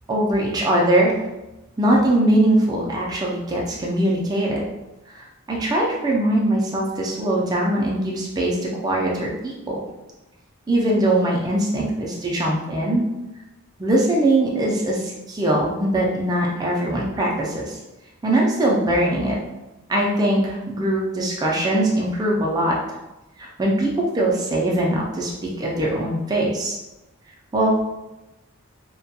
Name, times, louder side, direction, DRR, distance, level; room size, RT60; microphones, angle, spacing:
voice 1, 0.1-1.1 1.8-4.6 5.1-8.6 8.8-9.8 10.7-13.0 13.8-17.8 18.2-19.4 19.9-22.8 23.4-25.3 25.6-26.8 27.5-27.8, right 1 dB, 20° right, -3 dB, 0.3 m, -21 dB
2.2 x 2.2 x 2.7 m, 0.99 s
head